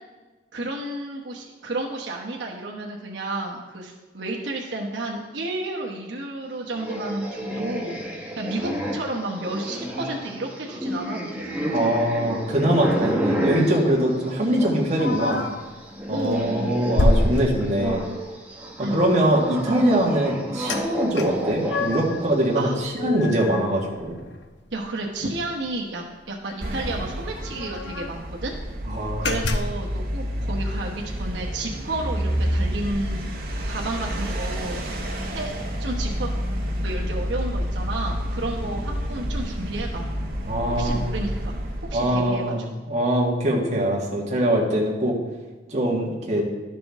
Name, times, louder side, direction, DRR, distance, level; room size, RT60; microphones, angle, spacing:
voice 1, 0.5-12.0 16.1-16.8 18.8-19.1 22.5-22.8 24.7-28.5 29.2-33.3 33.6-34.9 35.3-35.5 35.8-36.3 36.8-40.1 40.7-41.6 41.8-42.7, right 2 dB, 80° right, -1 dB, 1.0 m, -31 dB
sound 1, 6.7-15.4 15.7-22.5, equal, 10° right, 1.2 m, -30 dB
voice 2, 11.7-15.4 16.1-18.0 18.8-24.2 28.9-29.5 40.5-41.1 41.9-45.2 45.7-46.5, right 1 dB, 40° right, -3 dB, 1.7 m, -23 dB
sound 2, 15.0-15.7 16.2-16.4 17.0-18.1 20.7-20.8 21.1-22.2 22.6-24.4 24.8-24.9 25.2-25.4 26.5-26.6 26.8-26.9 27.4-28.2 28.7-28.8 29.2-29.9, left 2 dB, 80° left, 0.7 m, -26 dB
sound 3, 26.6-42.1, equal, 55° right, 1.6 m, -29 dB
12.0 x 6.1 x 3.6 m, 1.3 s
head